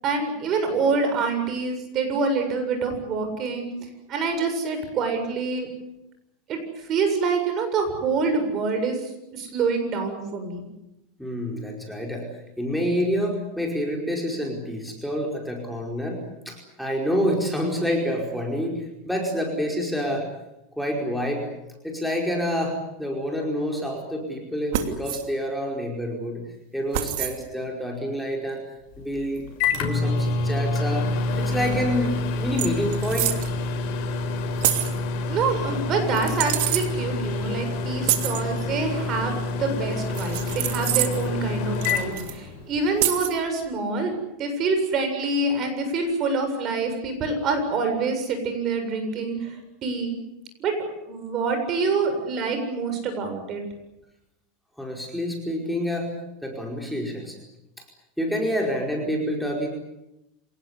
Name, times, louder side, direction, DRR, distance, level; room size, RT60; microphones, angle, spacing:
voice 1, 0.0-3.7 4.1-5.7 6.5-6.6 6.9-9.1 9.3-10.6 35.3-49.6 49.8-50.1 50.6-50.7 51.1-53.6, right 4 dB, 35° right, 7 dB, 7.5 m, -26 dB
voice 2, 11.2-12.3 12.6-20.3 20.8-21.5 21.8-26.4 26.7-28.6 29.0-29.5 29.7-31.1 31.4-33.3 54.8-56.1 56.4-57.4 58.2-59.7, equal, ahead, 0 dB, 5.0 m, -28 dB
sound 1, 24.7-25.2 26.9-27.4 29.4-29.5 31.7-31.8 32.0-32.2 32.6-33.5 34.6-35.0 36.1-36.9 38.0-38.4 40.1-41.3 41.8-42.3 43.0-43.4, right 14 dB, 70° right, 2.8 m, -26 dB
Microwave oven, 28.9-42.9, left 3 dB, 55° left, 5.8 m, -27 dB
27.0 x 19.0 x 9.9 m, 0.90 s
supercardioid pair, 140°, 0 cm